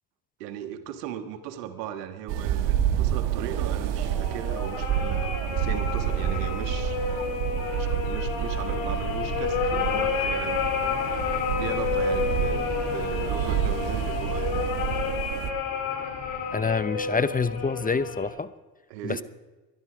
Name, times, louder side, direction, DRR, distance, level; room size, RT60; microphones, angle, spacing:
voice 1, 0.4-7.0 7.7-11.0 11.6-14.7 18.9-19.2, right 10 dB, 90° right, 8 dB, 1.6 m, -37 dB
sound 1, 2.3-15.5, right 10 dB, 65° right, 1.4 m, -29 dB
sound 2, 3.9-18.3, left 6 dB, 70° left, 4.2 m, -30 dB
voice 2, 16.5-18.5 19.0-19.2, left 4 dB, 20° left, 15 dB, 0.8 m, -26 dB
22.0 x 11.5 x 5.0 m, 1.2 s
supercardioid pair, 70°, 47 cm